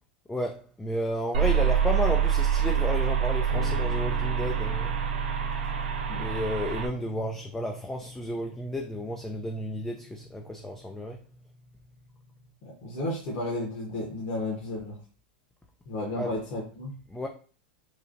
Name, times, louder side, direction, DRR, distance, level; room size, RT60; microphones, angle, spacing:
voice 1, 0.3-5.0 6.2-11.2 16.2-16.3 17.1-17.3, left 1 dB, 10° left, 0.3 m, -32 dB
sound 1, 1.3-6.9, right 8 dB, 75° right, 0.5 m, -26 dB
sound 2, 3.5-12.5, left 4 dB, 90° left, 0.6 m, -41 dB
voice 2, 12.6-15.0 15.9-16.9, left 1 dB, 45° left, 1.0 m, -33 dB
3.1 x 2.3 x 2.6 m
hypercardioid pair, 110°, 6 cm